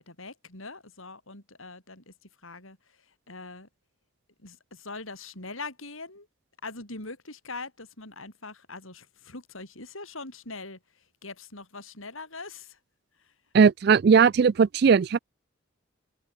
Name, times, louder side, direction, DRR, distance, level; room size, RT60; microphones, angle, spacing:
voice 1, 0.0-2.1 2.4-3.0 3.3-3.7 4.4-6.3 6.6-12.8 13.2-13.3, left 3 dB, 75° left, 7.2 m, -42 dB
voice 2, 13.5-15.2, right 6 dB, 50° right, 0.3 m, -18 dB
head